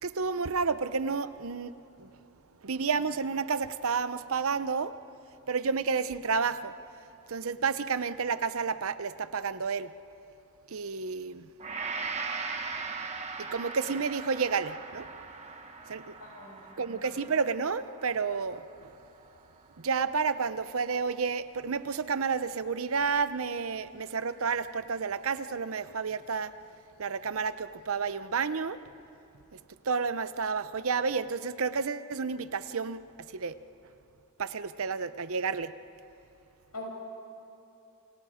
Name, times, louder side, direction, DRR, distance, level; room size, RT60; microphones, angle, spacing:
voice 1, 0.0-1.7 2.0-2.1 2.6-4.9 5.5-6.7 7.3-9.9 10.7-11.5 13.4-15.1 15.9-16.1 16.8-18.9 19.8-26.5 27.0-28.8 29.5-29.6 29.8-33.0 33.3-33.6 34.4-35.7, right 5 dB, 65° right, 13 dB, 0.7 m, -30 dB
Gong, 11.6-19.9 20.4-20.5, right 4 dB, 30° right, 1.6 m, -40 dB
voice 2, 16.2-16.6 36.7-36.8, left 3 dB, 80° left, -2 dB, 7.8 m, -42 dB
29.0 x 28.5 x 5.0 m, 2.8 s
head